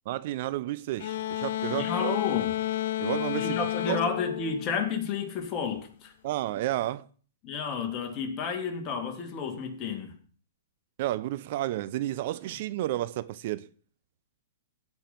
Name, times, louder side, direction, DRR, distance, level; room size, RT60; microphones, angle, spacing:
voice 1, 0.1-2.2 3.0-4.0 6.2-7.1 11.0-13.7, right 15 dB, 50° right, 0.7 m, -31 dB
sound 1, 1.0-5.5, left 13 dB, 60° left, 0.4 m, -31 dB
voice 2, 1.7-2.5 3.3-6.1 7.4-10.1, left 6 dB, 30° left, 2.8 m, -31 dB
16.5 x 5.6 x 6.0 m
hypercardioid pair, 125°, 0 cm